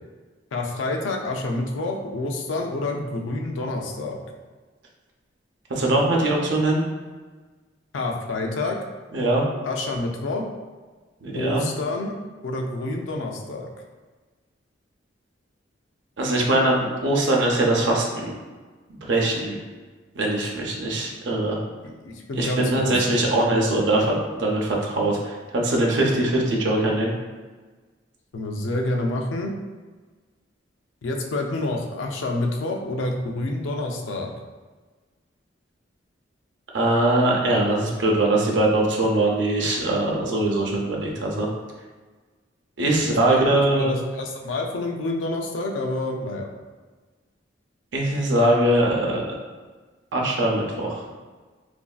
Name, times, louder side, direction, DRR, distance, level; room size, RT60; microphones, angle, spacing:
voice 1, 0.5-4.2 7.9-8.8 9.6-10.4 11.3-12.1 12.4-13.7 21.8-23.2 28.3-29.6 31.0-34.3 43.0-43.4 43.7-46.5, left 2 dB, 85° left, 2 dB, 0.4 m, -28 dB
voice 2, 5.7-6.8 9.1-9.4 11.2-11.6 16.2-18.3 19.0-19.6 20.2-21.6 22.4-27.1 36.7-41.5 42.8-44.0 47.9-49.2 50.1-50.9, right 1 dB, 70° right, -1 dB, 0.6 m, -22 dB
3.0 x 2.6 x 2.3 m, 1.4 s
head